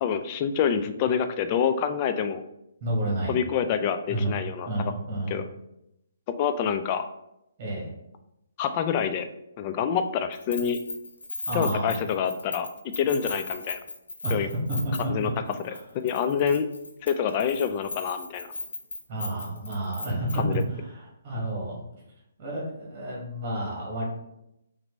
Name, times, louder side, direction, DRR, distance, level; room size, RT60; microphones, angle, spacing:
voice 1, 0.0-2.4 3.3-4.7 5.3-5.4 6.4-7.0 8.6-9.3 9.6-10.8 11.5-12.7 13.0-13.8 14.3-14.5 15.1-15.3 16.0-16.7 17.0-18.5 20.4-20.6, left 7 dB, 30° left, 9 dB, 0.4 m, -26 dB
voice 2, 2.8-3.3 4.1-4.3 4.6-5.3 7.6-7.9 11.4-11.9 14.2-15.1 19.1-21.8 22.4-24.1, right 1 dB, 30° right, -4 dB, 1.7 m, -30 dB
Keys jangling, 10.3-15.3 15.5-15.8 16.1-20.6, left 3 dB, 75° left, 0.8 m, -37 dB
5.8 x 2.7 x 3.1 m, 0.85 s
figure-of-eight pair, 135°, 0 cm